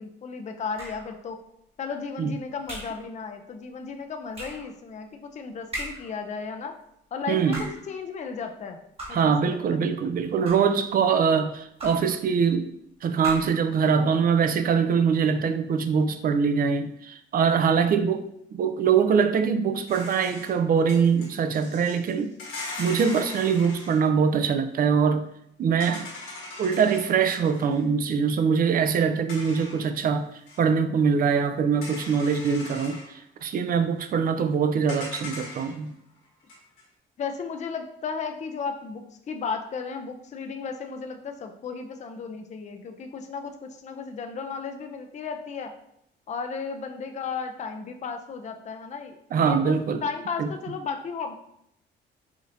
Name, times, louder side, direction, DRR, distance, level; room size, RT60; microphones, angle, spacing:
voice 1, 0.0-1.4 1.8-6.8 7.1-8.8 9.1-9.8 34.4-34.5 37.2-45.7 46.3-51.4, left 5 dB, 35° left, 5 dB, 0.4 m, -34 dB
sound 1, 0.8-1.2 2.7-3.1 4.3-4.7 5.7-6.2 7.3-7.9 9.0-9.4 10.2-10.8 11.8-12.2 13.2-13.7, right 1 dB, 30° right, 1.3 m, -38 dB
voice 2, 7.3-7.7 9.1-12.7 13.0-22.3 22.8-25.3 25.6-26.1 26.6-30.3 30.6-36.0 49.3-50.0 50.4-50.5, right 6 dB, 45° right, 9 dB, 0.4 m, -23 dB
sound 2, 19.9-24.0 25.8-27.8 29.3-30.0 30.5-30.6 31.8-33.1 34.9-35.9 36.2-36.8, left 2 dB, 90° left, 1.4 m, -40 dB
4.9 x 2.7 x 2.6 m, 0.75 s
cardioid pair, 90°, 20 cm